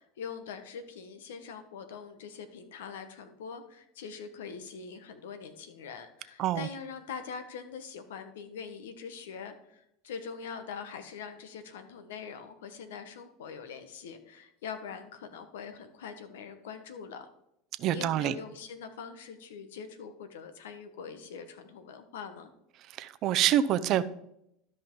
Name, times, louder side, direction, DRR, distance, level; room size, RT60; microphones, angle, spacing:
voice 1, 0.0-17.3 17.9-22.5, left 6 dB, 85° left, 1.2 m, -43 dB
voice 2, 17.8-18.3 23.0-24.0, right 11 dB, 50° right, 0.6 m, -26 dB
13.0 x 5.3 x 3.8 m
supercardioid pair, 105°, 0 cm